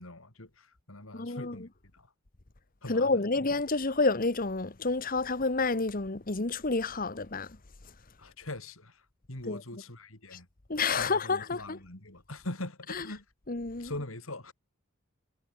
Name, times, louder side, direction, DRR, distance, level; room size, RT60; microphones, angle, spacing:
voice 1, 0.0-2.1 2.8-3.2 8.2-9.0 9.3-10.5 11.0-13.2 13.8-14.5, left 2 dB, 75° left, 4.8 m, -42 dB
voice 2, 1.1-1.6 2.9-7.5 9.5-9.6 10.7-11.8 13.0-13.1 13.5-13.9, left 3 dB, 40° left, 1.3 m, -29 dB
head